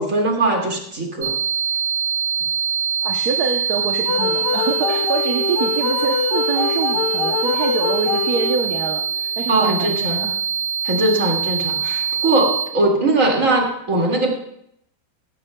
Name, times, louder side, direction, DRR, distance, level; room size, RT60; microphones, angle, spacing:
voice 1, 0.0-1.3 9.5-10.3 10.8-14.3, right 2 dB, 40° right, 0 dB, 2.5 m, -20 dB
sound 1, 1.2-12.6, right 7 dB, 75° right, 5.2 m, -23 dB
voice 2, 3.0-10.4, right 5 dB, 60° right, 3 dB, 1.2 m, -26 dB
sound 2, 4.1-8.9, left 7 dB, 65° left, 1.2 m, -24 dB
16.0 x 14.0 x 2.2 m, 0.73 s
omnidirectional pair, 2.2 m